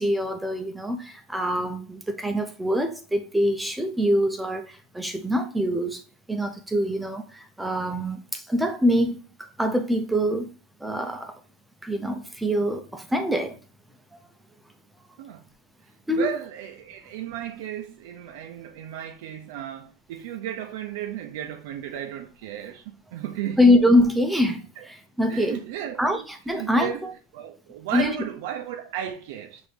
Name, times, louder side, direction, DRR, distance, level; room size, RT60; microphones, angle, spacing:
voice 1, 0.0-6.0 6.3-10.5 10.8-11.4 11.8-13.6 16.1-16.3 23.6-25.6 26.0-27.1 27.9-28.1, equal, 5° right, 0.5 m, -24 dB
voice 2, 16.1-23.6 24.8-24.9 25.3-29.6, right 10 dB, 60° right, 0.5 m, -34 dB
5.9 x 2.6 x 3.2 m
supercardioid pair, 155°, 0 cm